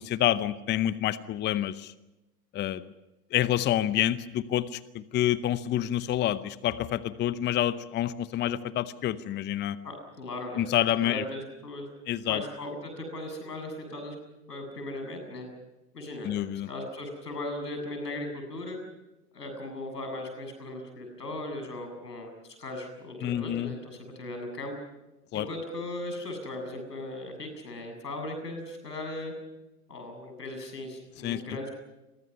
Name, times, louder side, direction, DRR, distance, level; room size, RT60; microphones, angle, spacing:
voice 1, 0.0-1.9 2.5-2.8 3.3-9.8 10.6-11.2 12.1-12.4 16.2-16.7 23.2-23.7 25.3-25.5 31.2-31.4, left 12 dB, 20° left, 16 dB, 0.8 m, -28 dB
voice 2, 9.8-10.7 11.0-11.9 12.3-14.2 14.5-15.5 15.9-16.3 16.7-18.8 19.3-24.7 25.3-29.3 29.9-31.7, left 1 dB, 85° left, 5 dB, 7.6 m, -38 dB
29.5 x 23.0 x 5.6 m, 1.0 s
figure-of-eight pair, 95°, 47 cm